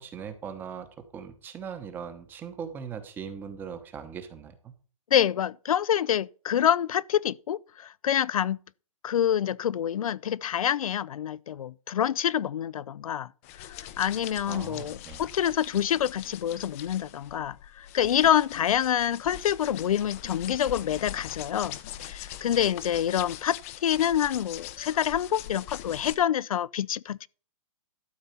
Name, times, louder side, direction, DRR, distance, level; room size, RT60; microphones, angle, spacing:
voice 1, 0.0-4.7 14.5-15.2, right 7 dB, 10° right, 1.0 m, -40 dB
voice 2, 5.1-8.6 9.0-13.3 14.0-27.3, left 10 dB, 85° left, 0.5 m, -27 dB
sound 1, 13.4-26.1, left 12 dB, 25° left, 0.6 m, -42 dB
12.5 x 4.3 x 8.4 m
hypercardioid pair, 165°, 18 cm